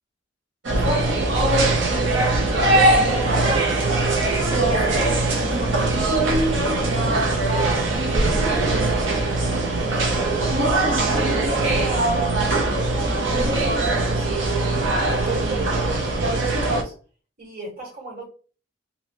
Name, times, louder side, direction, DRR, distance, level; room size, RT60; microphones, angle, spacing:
sound 1, 0.6-16.8, right 2 dB, 70° right, 0.7 m, -21 dB
voice 1, 0.7-1.8 2.6-6.8 7.1-7.9 8.3-10.6 11.1-14.8 15.1-16.9 17.4-18.3, right 2 dB, 50° right, 1.6 m, -34 dB
2.8 x 2.6 x 2.9 m
head